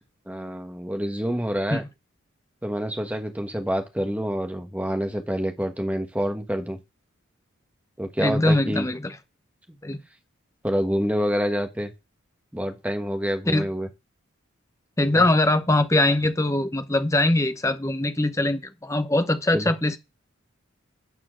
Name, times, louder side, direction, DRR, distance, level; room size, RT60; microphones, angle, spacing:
voice 1, 0.3-1.8 2.6-6.8 8.0-8.9 10.6-11.9 12.5-13.9 15.1-15.2 19.5-19.7, equal, 5° right, 1.2 m, -27 dB
voice 2, 8.2-9.2 9.8-10.0 13.5-13.7 15.0-20.0, left 1 dB, 15° left, 0.8 m, -22 dB
11.0 x 4.4 x 7.4 m
head